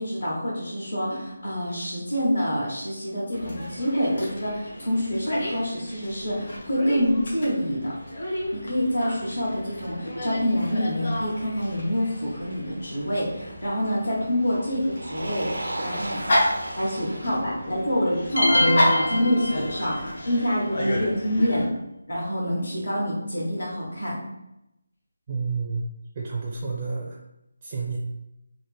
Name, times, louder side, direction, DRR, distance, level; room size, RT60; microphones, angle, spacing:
voice 1, 0.0-7.9 8.5-16.2 16.8-21.7 22.1-24.1, equal, 75° left, -5 dB, 1.4 m, -26 dB
Dog, 3.3-21.6, left 1 dB, 55° left, 1.0 m, -32 dB
Motor vehicle (road), 5.0-20.0, right 1 dB, 90° right, 0.5 m, -40 dB
sound 1, 18.4-20.2, left 1 dB, 90° left, 0.3 m, -23 dB
voice 2, 25.3-25.9 26.1-27.2 27.6-28.0, right 4 dB, 30° right, -2 dB, 0.4 m, -30 dB
3.3 x 2.1 x 3.2 m, 0.85 s
figure-of-eight pair, 165°, 0 cm